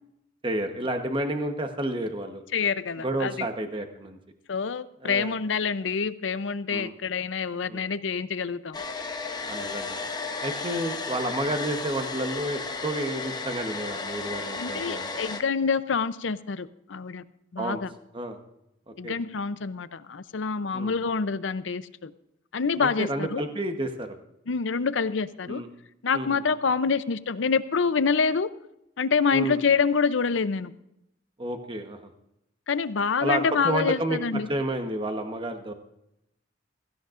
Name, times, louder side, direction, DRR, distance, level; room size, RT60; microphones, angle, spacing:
voice 1, 0.4-2.4 3.0-4.2 5.0-5.3 6.7-7.0 7.7-7.8 9.5-10.0 10.4-15.1 17.6-17.8 18.1-18.4 18.9-19.2 20.7-20.9 22.8-24.1 25.4-25.7 26.1-26.4 29.3-29.6 31.4-32.1 33.2-35.7, right 1 dB, 25° right, 5 dB, 1.1 m, -30 dB
voice 2, 2.5-3.5 4.5-8.8 10.6-10.9 14.6-17.2 17.5-17.9 19.0-22.1 22.5-23.4 24.5-25.6 26.0-28.5 29.0-30.8 32.7-34.5, left 5 dB, 85° left, 14 dB, 0.6 m, -26 dB
Domestic sounds home sounds, 8.7-15.4, left 4 dB, 20° left, 0.9 m, -34 dB
16.5 x 15.5 x 2.5 m, 0.83 s
head